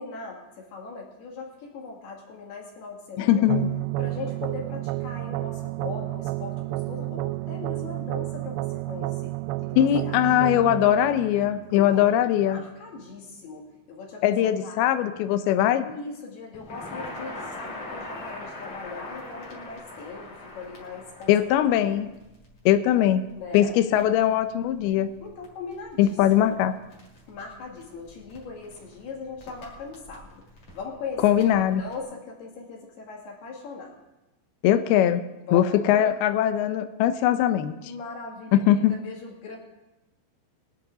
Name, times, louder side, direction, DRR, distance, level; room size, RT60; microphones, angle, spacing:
voice 1, 0.0-3.6 4.0-9.4 9.6-10.5 11.7-14.4 14.6-14.9 15.8-21.3 21.7-22.0 23.4-23.8 25.2-26.1 26.4-26.6 27.3-30.4 30.7-33.9 35.5-36.2 37.1-37.3 37.8-39.6, left 4 dB, 60° left, -2 dB, 4.4 m, -40 dB
voice 2, 3.2-3.7 9.8-12.6 14.2-15.9 21.3-22.1 22.7-23.2 23.5-25.1 26.0-26.7 31.2-31.8 34.6-35.2 35.5-37.7 38.5-39.0, left 11 dB, 85° left, 10 dB, 2.2 m, -21 dB
sound 1, 3.5-12.5, right 19 dB, 80° right, 2.6 m, -31 dB
Crackle, 16.5-32.0, left 2 dB, 35° left, 3.2 m, -43 dB
21.5 x 11.0 x 3.9 m, 0.99 s
omnidirectional pair, 5.3 m